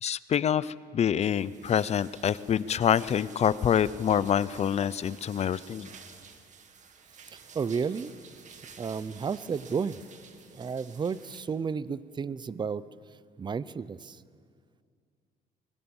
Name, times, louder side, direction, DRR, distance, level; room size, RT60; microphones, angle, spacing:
voice 1, 0.0-5.9, left 9 dB, 40° left, 18 dB, 0.6 m, -26 dB
sound 1, 1.2-11.4, right 6 dB, 45° right, 2.2 m, -52 dB
voice 2, 7.5-8.1 8.8-10.0 10.5-12.8 13.4-14.2, right 6 dB, 25° right, 17 dB, 0.7 m, -32 dB
23.0 x 21.0 x 7.2 m, 2.2 s
cardioid pair, 110°, 17 cm